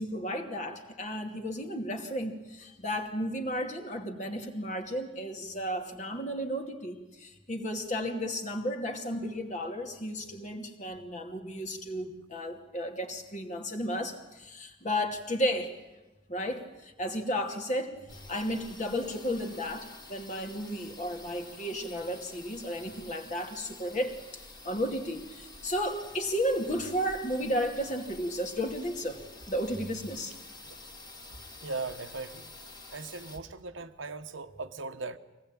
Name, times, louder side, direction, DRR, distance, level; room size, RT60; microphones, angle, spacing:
voice 1, 0.0-15.8 16.3-29.2 29.5-30.4, equal, 40° left, 2.6 m, -33 dB
sound 1, 18.1-33.4, left 2 dB, 20° left, 2.9 m, -49 dB
voice 2, 31.6-32.5 32.9-35.2, right 3 dB, 80° right, 1.2 m, -39 dB
25.0 x 18.5 x 9.0 m
head